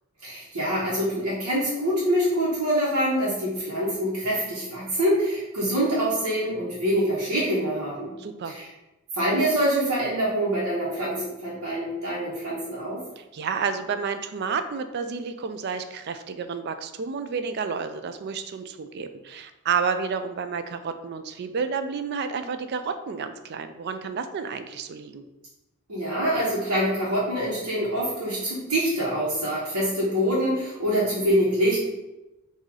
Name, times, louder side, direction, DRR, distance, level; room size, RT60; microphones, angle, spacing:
voice 1, 0.2-8.1 8.4-8.7 9.1-13.0 25.9-31.8, equal, 85° right, -10 dB, 1.3 m, -25 dB
voice 2, 8.2-8.6 13.2-25.2, right 5 dB, 50° right, 9 dB, 0.3 m, -30 dB
3.7 x 2.7 x 4.7 m, 1.0 s
head